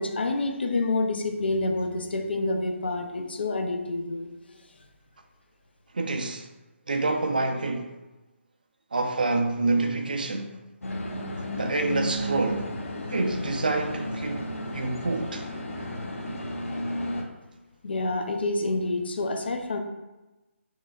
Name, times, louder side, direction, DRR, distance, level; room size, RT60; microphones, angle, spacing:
voice 1, 0.0-4.3 17.8-19.8, left 2 dB, 50° left, 0.6 m, -28 dB
voice 2, 5.9-6.5 6.9-8.0 8.9-10.6 11.6-12.7 13.1-14.4 14.7-15.5, right 3 dB, 40° right, 0.4 m, -27 dB
sound 1, 10.8-17.2, left 1 dB, 85° left, 0.9 m, -33 dB
6.5 x 3.2 x 2.4 m
hypercardioid pair, 180°, 7 cm